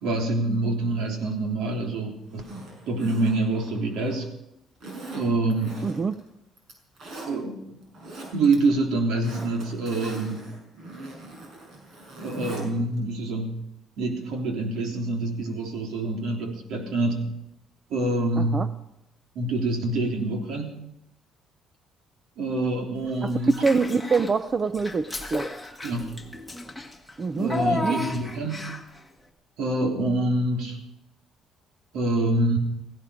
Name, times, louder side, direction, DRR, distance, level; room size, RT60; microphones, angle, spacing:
voice 1, 0.0-4.3 5.1-5.8 7.3-7.8 8.3-10.4 12.2-13.6 14.0-17.3 17.9-18.6 19.4-20.8 22.4-23.6 25.8-26.1 27.4-28.7 29.6-30.8 31.9-32.6, right 2 dB, 75° right, 2 dB, 3.6 m, -26 dB
Zipper (clothing), 2.3-4.2 4.8-6.2 6.6-7.3 7.8-8.6 8.9-12.7 13.0-13.1, right 2 dB, 55° right, 6.1 m, -41 dB
voice 2, 5.8-6.2 18.4-18.7 23.2-25.5 27.2-28.0, right 4 dB, 25° right, 12 dB, 0.5 m, -25 dB
Child speech kid speaking / Bathtub (filling or washing), 23.4-24.4 24.7-29.0, left 1 dB, ahead, 1.6 m, -32 dB
17.5 x 16.0 x 5.1 m, 0.84 s
cardioid pair, 140°, 0 cm